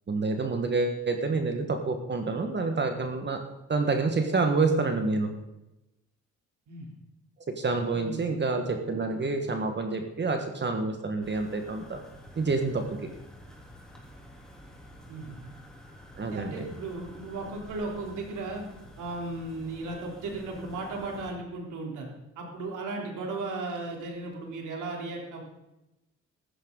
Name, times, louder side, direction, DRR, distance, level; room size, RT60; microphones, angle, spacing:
voice 1, 0.1-3.4 3.7-5.3 7.6-12.0 12.4-12.8 16.2-16.6, right 3 dB, 35° right, 5 dB, 1.7 m, -28 dB
voice 2, 7.9-8.4 15.1-15.4 16.3-18.6 19.0-25.4, right 3 dB, 80° right, 0 dB, 3.7 m, -36 dB
sound 1, 11.2-21.3, equal, ahead, 3.5 m, -49 dB
14.5 x 13.5 x 4.0 m, 0.95 s
cardioid pair, 90°, 30 cm